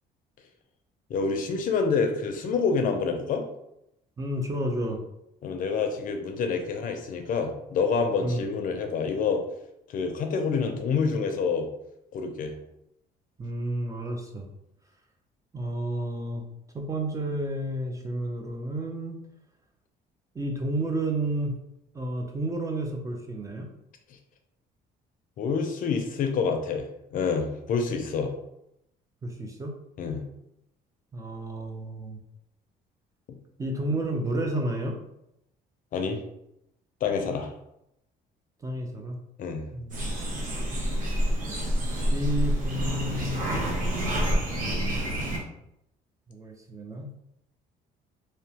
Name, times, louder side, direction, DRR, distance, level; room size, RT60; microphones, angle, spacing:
voice 1, 1.1-3.4 5.4-9.4 9.9-11.7 12.1-12.5 25.4-28.3 30.0-30.2 35.9-36.2 37.0-37.5 39.4-39.7, left 5 dB, 55° left, 5 dB, 0.4 m, -27 dB
voice 2, 4.2-5.0 8.2-8.5 13.4-14.5 15.5-16.5 16.7-19.2 20.3-21.6 21.9-23.7 29.2-29.8 31.1-32.2 33.6-35.0 38.6-39.2 39.7-40.0 42.1-44.1 44.5-45.4 46.3-47.1, right 1 dB, 20° right, 2 dB, 0.4 m, -31 dB
sound 1, 39.9-45.4, equal, 50° right, 0.8 m, -28 dB
2.8 x 2.0 x 2.8 m, 0.81 s
cardioid pair, 110°, 17 cm